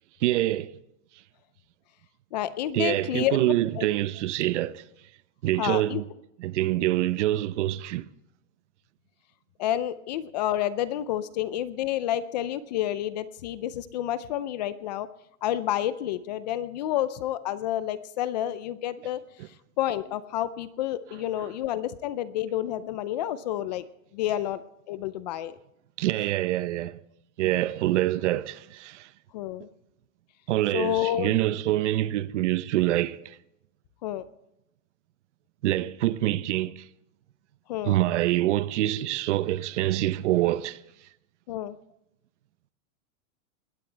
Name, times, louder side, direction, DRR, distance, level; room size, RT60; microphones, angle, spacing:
voice 1, 0.2-0.7 2.7-4.8 5.4-6.0 6.4-8.1 19.4-19.5 21.4-21.5 26.0-27.0 27.4-29.1 30.5-33.4 35.6-36.9 37.9-40.8, right 15 dB, 55° right, 0.8 m, -26 dB
voice 2, 2.3-3.9 5.6-6.0 9.6-15.1 15.4-19.2 19.8-23.8 24.1-24.6 24.9-25.6 29.3-29.7 30.7-31.4 34.0-34.2 37.7-38.0 41.5-41.8, left 12 dB, 30° left, 0.5 m, -29 dB
21.0 x 16.5 x 3.3 m
supercardioid pair, 160°, 43 cm